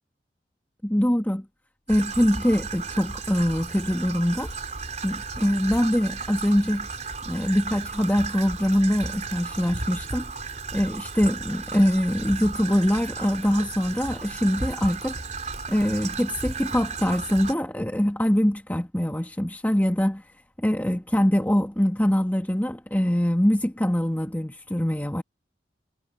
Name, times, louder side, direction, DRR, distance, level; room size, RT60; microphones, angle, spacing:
voice 1, 0.8-1.5 1.9-4.5 5.0-6.9 7.3-10.3 10.7-15.2 15.7-20.3 20.6-25.2, equal, 10° left, 1.9 m, -23 dB
Traffic noise roadway noise / Trickle dribble, 1.9-17.5, right 4 dB, 45° right, 4.5 m, -34 dB
head